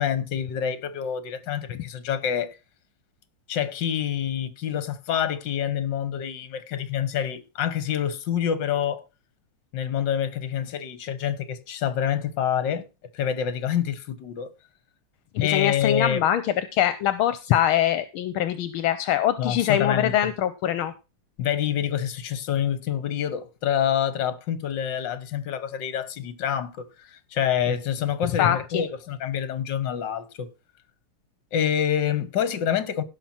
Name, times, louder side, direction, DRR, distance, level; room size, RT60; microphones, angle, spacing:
voice 1, 0.0-2.6 3.5-9.0 9.7-12.9 13.1-14.5 15.4-16.3 19.4-20.3 21.4-30.5 31.5-33.0, left 9 dB, 60° left, 1.8 m, -27 dB
voice 2, 15.3-20.9 28.2-28.8, left 11 dB, 80° left, 1.6 m, -23 dB
16.5 x 6.1 x 4.3 m
omnidirectional pair, 2.4 m